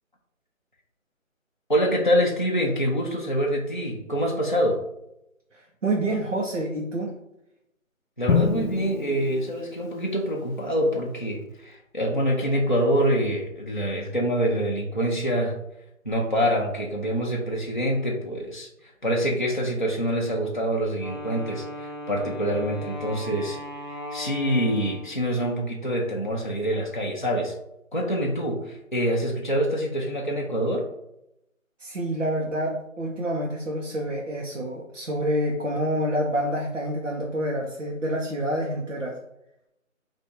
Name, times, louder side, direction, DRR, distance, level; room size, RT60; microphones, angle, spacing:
voice 1, 1.7-4.8 8.2-15.6 16.0-23.6 24.1-27.5 27.9-30.8, equal, 35° left, -2 dB, 0.5 m, -25 dB
voice 2, 5.8-7.2 31.8-39.2, right 1 dB, 60° right, -2 dB, 0.9 m, -27 dB
Drum, 8.3-10.3, left 6 dB, 85° left, 0.7 m, -26 dB
Wind instrument woodwind instrument, 21.0-25.3, left 1 dB, 35° right, 0.6 m, -37 dB
3.4 x 2.6 x 4.3 m, 0.82 s
figure-of-eight pair, 175°, 41 cm